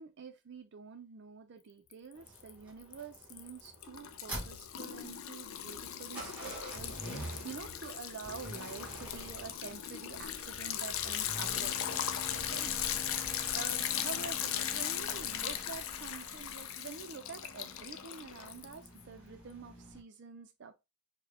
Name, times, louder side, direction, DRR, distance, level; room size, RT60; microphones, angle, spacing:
voice 1, 0.0-13.0 13.5-20.8, right 5 dB, 55° right, 0.4 m, -48 dB
Liquid, 1.9-2.5 2.8-19.0, left 10 dB, 70° left, 0.4 m, -38 dB
sound 1, 2.2-20.0, equal, 5° right, 1.3 m, -47 dB
4.5 x 2.2 x 3.4 m
head